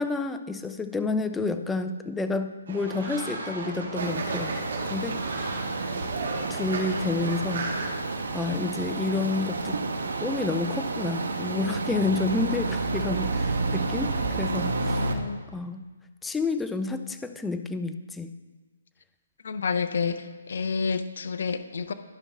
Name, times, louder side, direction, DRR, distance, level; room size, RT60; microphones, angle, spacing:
voice 1, 0.0-4.5 4.9-5.6 6.5-8.0 8.3-9.8 10.2-15.2 15.5-15.9 16.2-18.3, left 3 dB, 5° left, 8 dB, 0.4 m, -30 dB
Fowl, 2.7-7.9, right 3 dB, 60° right, 2.1 m, -35 dB
sound 1, 4.0-15.1, right 3 dB, 85° right, 1.3 m, -30 dB
voice 2, 15.0-15.4 19.4-20.2 20.5-21.9, left 5 dB, 60° left, 8 dB, 0.6 m, -29 dB
14.0 x 5.4 x 3.6 m, 1.3 s
hypercardioid pair, 165°, 0 cm